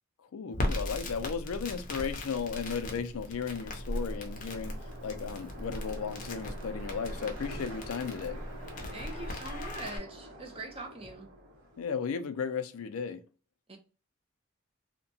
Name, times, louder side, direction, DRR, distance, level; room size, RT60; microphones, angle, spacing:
voice 1, 0.2-4.8 5.0-8.4 11.8-13.2, left 6 dB, 85° left, 0.4 m, -35 dB
Crackle, 0.5-10.0, left 1 dB, 35° left, 0.5 m, -38 dB
sound 1, 3.0-12.1, equal, 60° right, 1.3 m, -47 dB
voice 2, 8.9-11.3 13.7-13.8, right 2 dB, 25° right, 0.5 m, -43 dB
2.8 x 2.2 x 2.7 m
head